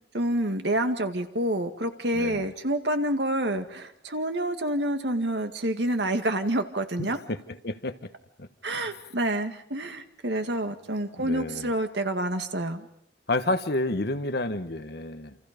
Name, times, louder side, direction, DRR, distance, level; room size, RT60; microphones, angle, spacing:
voice 1, 0.1-7.2 8.6-12.9, right 1 dB, 65° right, 7 dB, 2.0 m, -28 dB
voice 2, 2.1-2.5 7.1-8.1 8.4-9.0 11.2-11.7 13.3-15.4, left 2 dB, 60° left, 9 dB, 1.4 m, -30 dB
28.5 x 27.5 x 5.3 m, 0.71 s
head